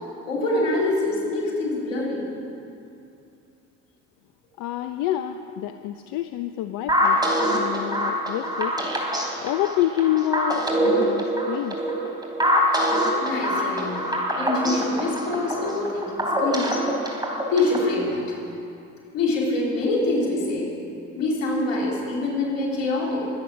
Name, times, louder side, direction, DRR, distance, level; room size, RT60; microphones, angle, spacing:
voice 1, 0.2-2.2 13.2-14.0 14.4-16.8 17.5-18.4 19.1-20.7 21.2-23.3, left 2 dB, 80° left, -2 dB, 3.7 m, -25 dB
voice 2, 4.6-7.2 7.5-8.8 9.4-11.8, left 12 dB, 60° left, 9 dB, 0.7 m, -27 dB
sound 1, 6.9-17.9, equal, 10° right, 3.5 m, -24 dB
21.5 x 8.4 x 6.3 m, 2.6 s
hypercardioid pair, 60°, 38 cm